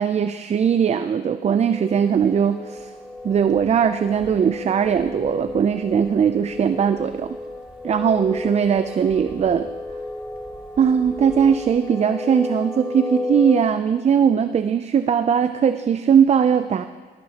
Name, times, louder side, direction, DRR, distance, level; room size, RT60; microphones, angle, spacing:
voice 1, 0.0-2.9 3.2-7.4 7.8-9.7 10.8-16.8, right 7 dB, 35° right, 11 dB, 0.4 m, -19 dB
sound 1, 1.6-13.6, left 2 dB, 15° left, 2.0 m, -33 dB
Wind, 2.2-11.9, right 1 dB, 5° right, 2.3 m, -49 dB
15.0 x 13.0 x 2.9 m, 1.4 s
cardioid pair, 90°, 20 cm